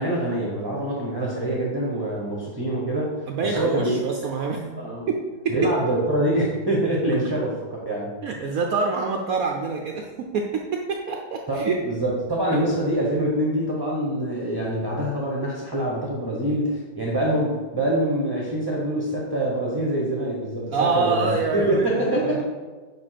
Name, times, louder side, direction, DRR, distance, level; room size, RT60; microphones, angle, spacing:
voice 1, 0.0-3.1 3.4-4.0 4.8-5.1 5.5-8.1 11.5-21.3 21.5-22.4, right 1 dB, 15° right, -4 dB, 1.0 m, -25 dB
voice 2, 3.3-4.8 5.1-5.5 8.2-11.8 20.7-22.4, right 4 dB, 65° right, 1 dB, 1.0 m, -26 dB
5.5 x 5.3 x 5.8 m, 1.3 s
omnidirectional pair, 1.8 m